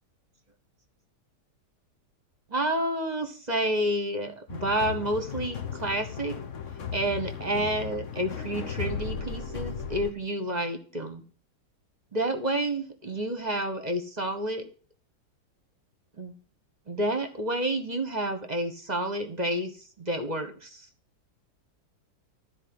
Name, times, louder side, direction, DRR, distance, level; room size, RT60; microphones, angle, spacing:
voice 1, 2.5-6.4 6.9-11.2 12.1-14.7 16.2-16.3 16.9-19.7 20.0-20.8, right 1 dB, 25° right, 7 dB, 1.2 m, -29 dB
sound 1, 4.5-10.1, left 6 dB, 50° left, 1.3 m, -36 dB
13.0 x 4.7 x 7.9 m, 0.40 s
omnidirectional pair, 1.8 m